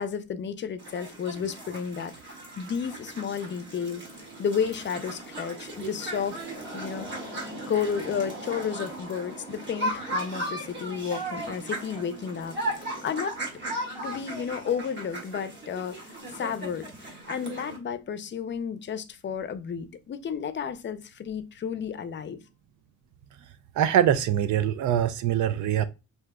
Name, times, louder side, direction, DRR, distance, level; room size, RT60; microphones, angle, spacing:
voice 1, 0.0-2.1 2.6-4.0 4.4-6.4 6.7-7.3 7.7-13.4 14.0-22.4, left 7 dB, 40° left, 0.5 m, -32 dB
sound 1, 0.8-17.8, right 1 dB, 40° right, 1.9 m, -37 dB
voice 2, 23.8-25.8, right 10 dB, 75° right, 0.5 m, -23 dB
6.0 x 2.7 x 2.2 m
cardioid pair, 135°, 30 cm